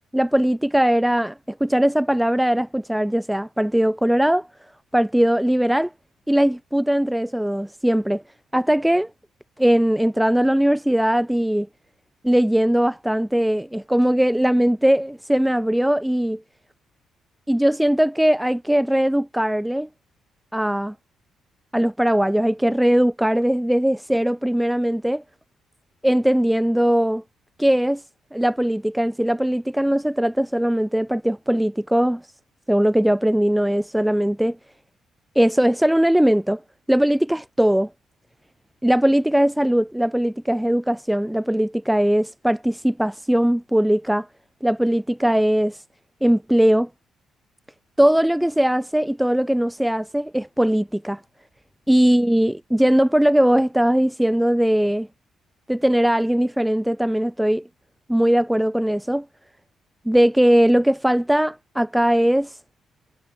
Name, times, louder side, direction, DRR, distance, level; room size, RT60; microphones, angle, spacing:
voice 1, 0.1-4.5 4.9-5.9 6.3-8.2 8.5-9.1 9.6-11.7 12.2-16.4 17.5-19.9 20.5-20.9 21.7-25.2 26.0-27.2 27.6-28.0 28.3-32.2 32.7-34.6 35.3-36.6 36.9-37.9 38.8-44.3 44.6-45.8 46.2-46.9 48.0-51.2 51.9-55.1 55.7-57.7 58.1-59.2 60.0-62.6, equal, 5° right, 1.3 m, -20 dB
cardioid pair, 90°, 0 cm